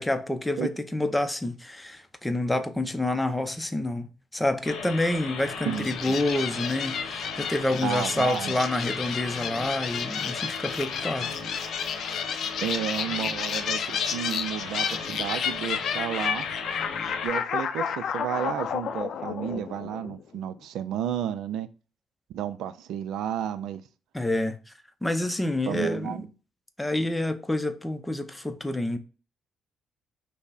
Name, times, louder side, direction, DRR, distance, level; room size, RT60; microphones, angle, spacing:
voice 1, 0.0-11.3 24.1-24.6 25.0-26.3 26.8-29.0, left 1 dB, 10° left, 0.6 m, -28 dB
sound 1, 4.6-17.3, left 4 dB, 90° left, 0.9 m, -37 dB
sound 2, 5.7-20.4, left 7 dB, 65° left, 0.4 m, -32 dB
voice 2, 5.7-6.2 7.8-8.5 12.6-16.5 17.2-21.7 22.3-23.8 25.2-25.3 25.7-26.3, right 9 dB, 85° right, 0.3 m, -32 dB
5.7 x 2.1 x 4.0 m
cardioid pair, 90°, 0 cm